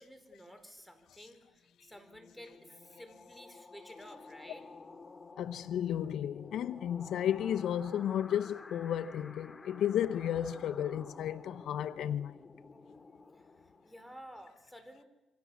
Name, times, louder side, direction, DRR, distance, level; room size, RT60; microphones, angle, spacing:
voice 1, 0.0-4.7 13.3-15.0, equal, ahead, 4.9 m, -53 dB
sound 1, 1.6-14.2, left 3 dB, 25° left, 2.4 m, -52 dB
voice 2, 5.4-12.3, left 10 dB, 75° left, 0.8 m, -33 dB
27.0 x 25.0 x 7.3 m
cardioid pair, 90°, 0 cm